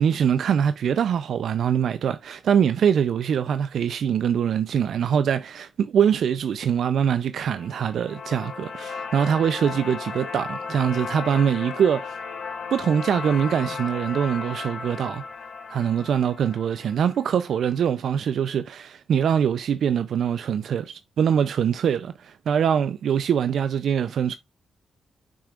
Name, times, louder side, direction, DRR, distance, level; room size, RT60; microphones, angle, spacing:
voice 1, 0.0-12.2 12.7-15.2 15.7-24.4, right 8 dB, 75° right, 0.5 m, -23 dB
sound 1, 7.5-17.6, left 5 dB, 70° left, 2.9 m, -35 dB
6.7 x 6.3 x 2.4 m
cardioid pair, 75°, 0 cm